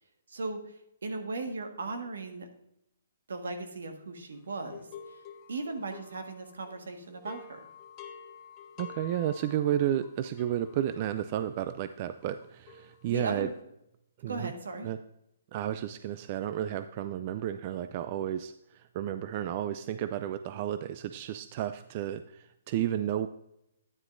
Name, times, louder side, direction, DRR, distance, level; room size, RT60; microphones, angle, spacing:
voice 1, 0.3-2.5 3.3-5.2 5.5-7.7 13.1-13.5 14.2-14.9, right 3 dB, 80° right, 5 dB, 1.5 m, -37 dB
sound 1, 4.5-6.8 7.1-13.4, left 6 dB, 25° left, 0.9 m, -50 dB
voice 2, 8.8-13.5 14.2-14.5 14.8-15.0 15.5-23.3, right 11 dB, 40° right, 11 dB, 0.4 m, -32 dB
9.7 x 9.5 x 2.6 m, 0.81 s
hypercardioid pair, 140°, 0 cm